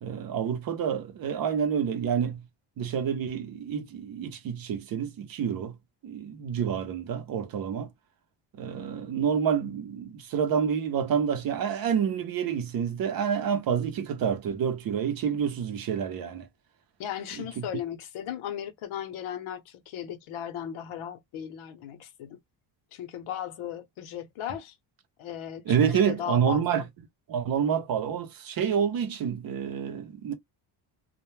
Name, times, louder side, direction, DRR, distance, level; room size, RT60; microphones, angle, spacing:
voice 1, 0.0-2.5 2.8-5.8 6.0-7.9 8.5-16.5 17.4-17.7 25.7-26.8 27.3-30.3, right 7 dB, 45° right, 0.6 m, -28 dB
voice 2, 17.0-22.4 22.9-24.7 25.2-26.9, left 10 dB, 75° left, 0.8 m, -37 dB
2.1 x 2.1 x 3.0 m
cardioid pair, 175°, 48 cm